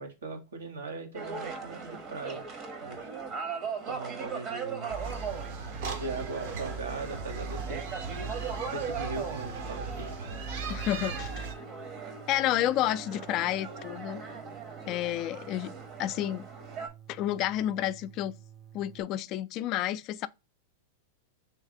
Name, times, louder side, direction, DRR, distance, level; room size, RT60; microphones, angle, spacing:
voice 1, 0.0-2.4 2.8-3.1 3.9-4.9 6.0-7.9 8.7-10.1, right 3 dB, 90° right, 1.3 m, -39 dB
sound 1, 1.1-16.9, right 5 dB, 40° right, 1.0 m, -39 dB
sound 2, 4.9-11.5, right 4 dB, 60° right, 1.0 m, -37 dB
sound 3, 7.6-19.0, right 10 dB, 15° right, 0.5 m, -52 dB
voice 2, 10.7-11.5 12.3-14.2 14.9-16.5 17.1-18.3 18.7-20.3, left 13 dB, 40° left, 0.3 m, -30 dB
3.3 x 3.2 x 3.6 m
hypercardioid pair, 120°, 0 cm